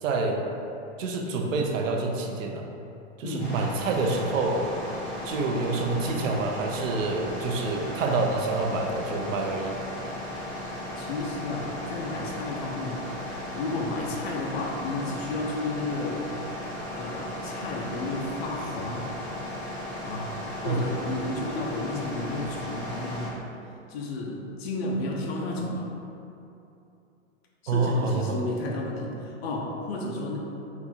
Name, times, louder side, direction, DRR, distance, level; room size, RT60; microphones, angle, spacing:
voice 1, 0.0-0.4 1.0-2.7 3.2-4.7 5.2-9.8 20.6-20.8 27.7-28.4, right 3 dB, 90° right, 2 dB, 0.7 m, -27 dB
voice 2, 3.2-3.6 11.0-16.2 16.9-19.1 20.0-20.3 20.6-23.4 23.9-25.9 27.6-30.4, left 2 dB, 55° left, -2 dB, 0.6 m, -32 dB
sound 1, 3.4-23.3, left 1 dB, 5° right, 0.8 m, -36 dB
4.0 x 2.4 x 4.2 m, 2.8 s
supercardioid pair, 180°, 37 cm